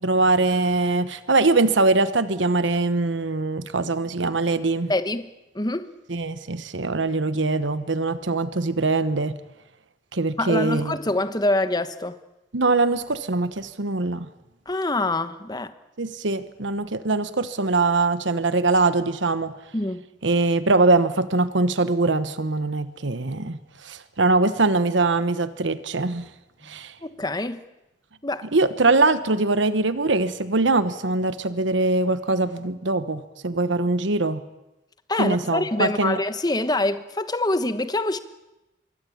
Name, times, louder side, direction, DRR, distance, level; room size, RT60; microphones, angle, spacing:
voice 1, 0.0-4.9 6.1-9.4 10.1-10.9 12.5-14.3 16.0-19.5 20.2-26.3 26.6-26.9 28.5-34.4 35.2-36.2, right 3 dB, 90° right, 1.2 m, -22 dB
voice 2, 4.9-5.3 5.5-5.9 10.4-12.2 14.7-15.7 19.7-20.0 26.7-27.6 28.2-28.5 35.1-38.2, left 2 dB, 20° left, 1.1 m, -25 dB
26.0 x 23.0 x 8.7 m
head